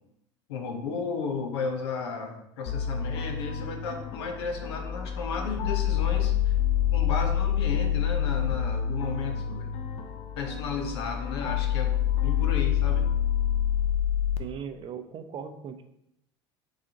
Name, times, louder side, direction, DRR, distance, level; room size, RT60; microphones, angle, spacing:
voice 1, 0.5-6.6 6.9-9.7 10.4-13.1, left 4 dB, 75° left, 4 dB, 0.8 m, -34 dB
sound 1, 2.7-14.4, left 10 dB, 45° left, 0.5 m, -27 dB
voice 2, 14.4-15.8, right 7 dB, 40° right, 8 dB, 0.5 m, -38 dB
4.9 x 3.7 x 2.8 m, 0.79 s
hypercardioid pair, 75°, 14 cm